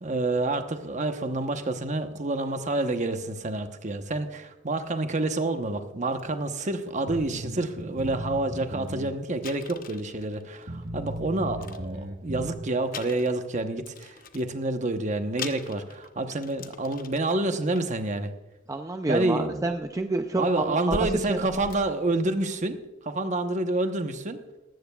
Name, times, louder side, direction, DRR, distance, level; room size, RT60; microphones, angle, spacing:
voice 1, 0.0-18.3 19.1-19.6 20.3-24.4, right 2 dB, 40° right, 7 dB, 1.0 m, -28 dB
sound 1, 6.2-6.3 6.7-7.0 7.7-7.8 8.0-8.1 8.6-8.7 8.8-8.9 9.4-11.2 11.5-12.4 12.9-14.6 15.1-15.2 15.4-17.4 17.7-18.0 19.1-19.2 19.7-22.7, left 4 dB, 50° left, 0.8 m, -42 dB
sound 2, 7.1-9.2 9.4-9.5 10.1-10.2 10.7-12.6, right 1 dB, 60° right, 1.5 m, -36 dB
voice 2, 18.7-21.4, right 2 dB, 20° right, 6 dB, 0.4 m, -28 dB
19.0 x 14.0 x 2.3 m, 1.1 s
head